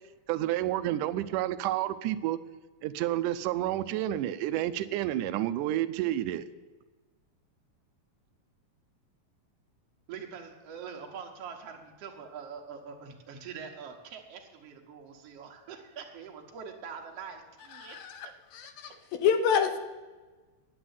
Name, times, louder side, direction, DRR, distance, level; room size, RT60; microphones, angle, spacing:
voice 1, 0.3-2.4 2.8-6.5, right 13 dB, 80° right, 14 dB, 1.9 m, -30 dB
voice 2, 10.1-18.0, right 6 dB, 55° right, 3 dB, 2.0 m, -44 dB
voice 3, 17.8-18.3 18.5-19.8, left 7 dB, 90° left, 8 dB, 2.8 m, -28 dB
10.0 x 7.8 x 9.5 m, 1.3 s
omnidirectional pair, 4.0 m